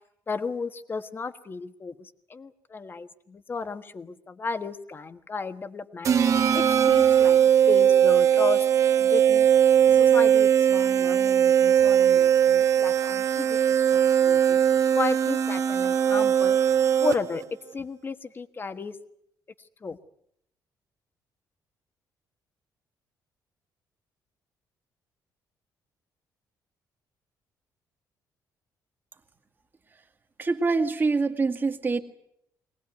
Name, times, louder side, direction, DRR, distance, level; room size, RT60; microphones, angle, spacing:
voice 1, 0.3-6.2 6.5-7.4 7.6-8.7 9.0-9.5 9.8-14.6 14.9-16.6 17.0-17.4 17.7-19.0 19.8-20.0, left 4 dB, 30° left, 11 dB, 1.4 m, -34 dB
sound 1, 6.1-17.4, right 9 dB, 45° right, 1.7 m, -20 dB
voice 2, 30.4-32.0, right 4 dB, 25° right, 6 dB, 2.1 m, -25 dB
23.0 x 18.5 x 9.3 m, 0.73 s
cardioid pair, 120°, 7 cm